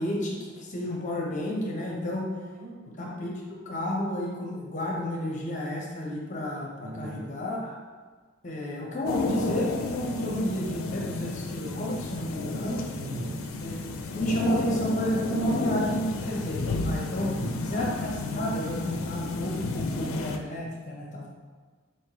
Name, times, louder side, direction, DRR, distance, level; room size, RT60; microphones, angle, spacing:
voice 1, 0.0-2.3 3.0-7.7 8.4-12.8 13.6-13.7 14.1-17.3 17.6-21.3, equal, 35° left, -3 dB, 0.8 m, -31 dB
voice 2, 2.5-2.8 6.8-7.4 13.0-13.5 17.2-17.7, right 1 dB, 35° right, -1 dB, 0.5 m, -38 dB
sound 1, 9.1-20.4, left 2 dB, 80° left, 0.4 m, -32 dB
4.5 x 3.3 x 2.9 m, 1.4 s
head